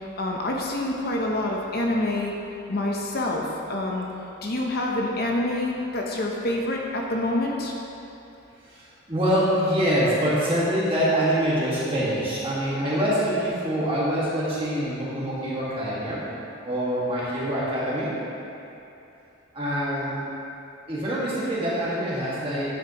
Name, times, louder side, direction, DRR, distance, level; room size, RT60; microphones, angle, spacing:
voice 1, 0.2-2.3 2.7-4.1 4.4-7.7, left 1 dB, 45° left, -1 dB, 0.7 m, -27 dB
voice 2, 8.6-16.2 16.6-18.2 19.5-20.1 20.9-22.7, equal, 25° right, -8 dB, 1.7 m, -25 dB
9.5 x 7.9 x 2.9 m, 2.8 s
head